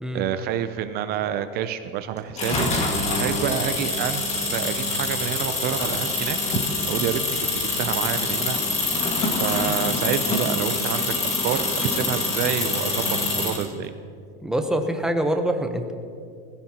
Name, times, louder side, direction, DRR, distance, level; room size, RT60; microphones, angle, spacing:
voice 1, 0.1-6.6 6.8-8.6 9.3-13.9, right 10 dB, 35° right, 10 dB, 0.5 m, -28 dB
sound 1, 2.4-13.7, left 2 dB, 20° left, 1.8 m, -25 dB
voice 2, 14.4-15.9, right 1 dB, ahead, 5 dB, 0.8 m, -25 dB
20.0 x 16.0 x 2.9 m, 2.3 s
supercardioid pair, 155°, 30 cm